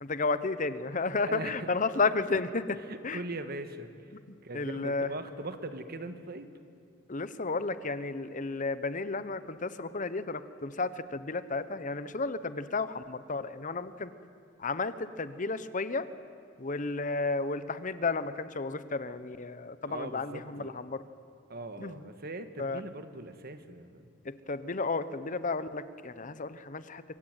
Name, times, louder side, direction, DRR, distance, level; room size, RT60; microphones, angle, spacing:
voice 1, 0.0-3.2 4.5-5.1 7.1-14.1 14.6-16.1 16.6-21.0 21.8-21.9 22.6-22.8 24.2-27.0, left 3 dB, 40° left, 13 dB, 1.0 m, -32 dB
voice 2, 1.3-1.7 2.9-4.1 4.4-6.5 19.8-20.7 21.5-24.1, right 2 dB, 50° right, 9 dB, 1.6 m, -40 dB
26.0 x 24.0 x 9.2 m, 2.4 s
head